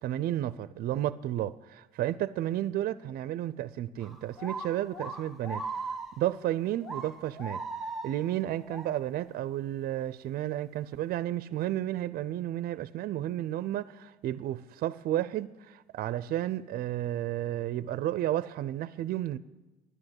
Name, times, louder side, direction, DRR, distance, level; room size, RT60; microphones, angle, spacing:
voice 1, 0.0-5.6 6.2-7.6 8.0-19.4, right 13 dB, 60° right, 0.4 m, -32 dB
sound 1, 4.0-6.5 6.8-9.0, right 3 dB, ahead, 1.0 m, -39 dB
11.0 x 9.9 x 7.9 m
cardioid pair, 110°, 17 cm